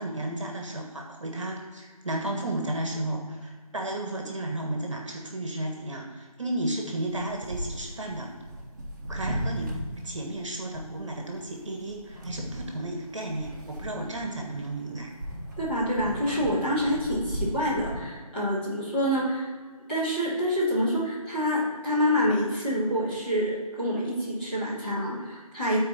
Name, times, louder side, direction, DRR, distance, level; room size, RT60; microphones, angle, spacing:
voice 1, 0.0-8.3 9.1-15.1, right 1 dB, 50° right, 1 dB, 1.5 m, -33 dB
sound 1, 7.1-18.0, equal, 30° right, 1.4 m, -37 dB
voice 2, 15.6-19.5 19.9-25.8, equal, 15° left, -11 dB, 2.3 m, -27 dB
13.0 x 4.5 x 4.3 m, 1.5 s
figure-of-eight pair, 175°, 20 cm